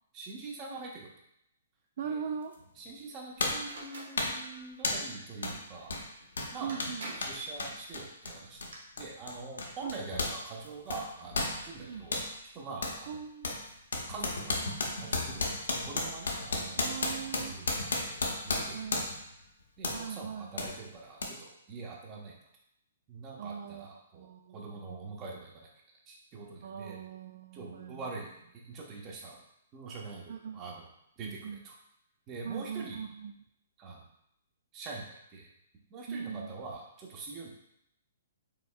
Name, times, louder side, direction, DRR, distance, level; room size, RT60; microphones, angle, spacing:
voice 1, 0.1-1.1 2.0-2.3 2.8-6.0 6.5-6.8 7.2-8.6 9.0-12.2 12.5-13.1 14.1-15.5 15.8-17.0 17.4-17.7 18.0-19.0 19.8-22.4 23.1-25.7 26.1-27.0 27.5-29.4 29.7-30.9 31.2-31.7 32.3-33.0 33.8-34.1 34.7-35.5 35.9-37.5, right 3 dB, 30° right, -1 dB, 1.0 m, -44 dB
voice 2, 2.0-2.5 6.6-7.1 9.8-10.0 11.8-12.1 13.1-13.6 16.8-17.6 18.7-19.2 19.9-20.7 23.4-25.1 26.6-28.1 30.3-30.6 31.2-31.6 32.4-33.3 36.1-36.6, right 7 dB, 55° right, 3 dB, 0.3 m, -40 dB
sound 1, 2.5-2.7 3.4-3.7 4.2-4.4 4.8-5.1 5.4-5.6 5.9-10.4 10.6-12.3 12.8-13.0 13.4-19.3 19.8-20.0 20.6-20.7 21.2-21.3, left 2 dB, 75° left, 0.8 m, -34 dB
sound 2, 3.6-4.1 6.2-6.3 6.7-7.4 8.4-8.8, right 1 dB, 70° right, 1.0 m, -44 dB
5.1 x 3.5 x 2.3 m, 0.77 s
figure-of-eight pair, 125°, 0 cm